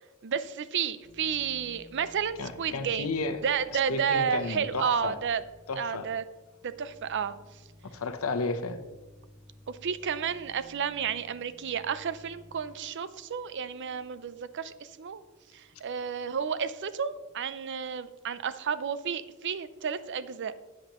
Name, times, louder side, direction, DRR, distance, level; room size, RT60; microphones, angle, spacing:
voice 1, 0.2-3.1 3.4-5.4 5.8-6.2 6.6-7.3 9.7-15.2 15.5-20.5, right 7 dB, 55° right, 14 dB, 0.5 m, -31 dB
sound 1, 1.0-18.4, left 1 dB, 40° right, 1.6 m, -56 dB
voice 2, 2.4-3.4 3.9-5.2 5.7-6.1 7.9-8.8, left 3 dB, 85° left, 9 dB, 0.9 m, -32 dB
13.0 x 8.8 x 3.0 m, 1.2 s
head